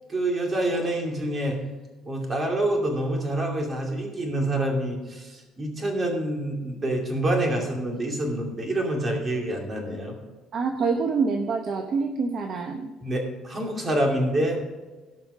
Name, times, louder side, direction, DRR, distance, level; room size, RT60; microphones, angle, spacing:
voice 1, 0.1-1.6 2.0-10.2 13.0-14.6, right 1 dB, 25° right, 1 dB, 2.6 m, -27 dB
voice 2, 10.5-12.9, right 4 dB, 40° right, 5 dB, 0.9 m, -26 dB
17.0 x 5.8 x 5.0 m, 1.3 s
cardioid pair, 150°, 0 cm